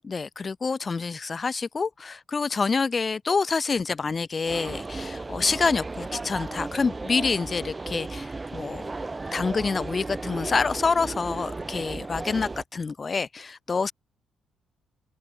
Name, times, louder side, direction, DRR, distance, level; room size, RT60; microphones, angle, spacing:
voice 1, 0.0-8.8 9.3-13.9, left 4 dB, 35° left, 1.8 m, -27 dB
sound 1, 4.5-12.6, right 3 dB, 20° right, 1.4 m, -35 dB
open air
cardioid pair, 90°, 0 cm